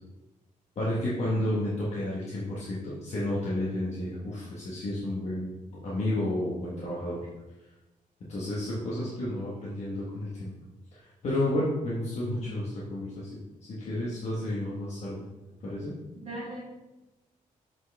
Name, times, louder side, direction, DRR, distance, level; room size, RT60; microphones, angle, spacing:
voice 1, 0.7-5.5 5.8-7.3 8.3-10.5 10.9-15.2 15.6-15.9, left 1 dB, 50° left, -6 dB, 1.3 m, -31 dB
voice 2, 1.3-1.7 12.2-12.5 16.2-16.6, right 1 dB, 45° right, -7 dB, 1.6 m, -40 dB
7.4 x 4.5 x 3.4 m, 1.0 s
wide cardioid pair, 150°, 14 cm